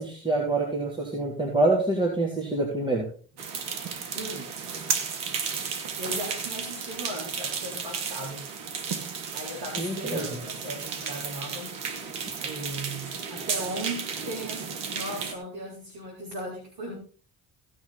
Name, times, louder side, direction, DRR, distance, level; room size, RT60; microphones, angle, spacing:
voice 1, 0.0-3.1 9.8-10.3, right 2 dB, 10° right, -2 dB, 3.4 m, -26 dB
sound 1, 3.4-15.3, right 6 dB, 80° right, 1.4 m, -33 dB
voice 2, 4.1-4.5 6.0-8.5 9.3-11.8 12.4-17.0, right 1 dB, 65° right, -2 dB, 4.1 m, -37 dB
16.5 x 6.6 x 4.2 m, 0.42 s
hypercardioid pair, 45°, 43 cm